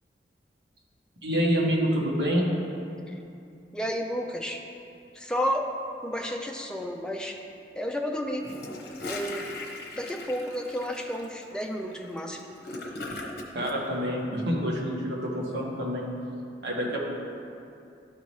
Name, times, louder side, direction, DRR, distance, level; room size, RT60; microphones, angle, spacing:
voice 1, 1.2-2.5 13.5-16.1 16.6-17.1, equal, 75° right, -3 dB, 1.3 m, -27 dB
voice 2, 3.7-4.6 5.1-5.7 6.0-7.4 7.8-8.5 9.0-9.5 9.9-12.5, equal, 5° left, 2 dB, 0.4 m, -31 dB
Gurgling / Toilet flush, 8.4-13.8, left 2 dB, 60° left, 0.8 m, -39 dB
12.0 x 4.1 x 3.2 m, 2.6 s
head